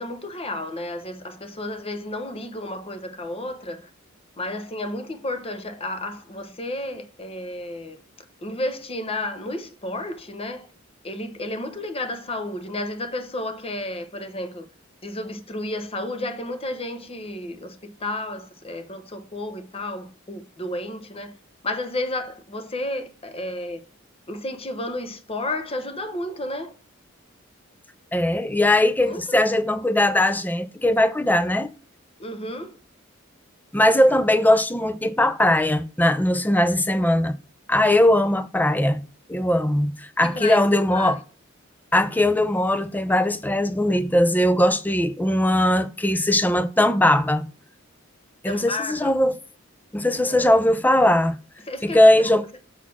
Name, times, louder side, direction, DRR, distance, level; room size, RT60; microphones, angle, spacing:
voice 1, 0.0-3.9 4.4-8.0 8.4-10.7 11.0-14.7 15.0-21.3 21.6-23.8 24.3-26.8 28.4-28.5 29.0-29.2 32.2-32.8 40.2-40.6 40.9-41.2 48.5-49.1 50.3-50.6 51.7-52.3, left 1 dB, 30° left, 1.0 m, -32 dB
voice 2, 28.1-31.7 33.7-37.3 37.7-39.0 39.3-41.2 41.9-47.5 48.4-49.4 49.9-51.4 51.8-52.5, left 1 dB, 10° left, 0.5 m, -20 dB
7.1 x 4.2 x 6.1 m
head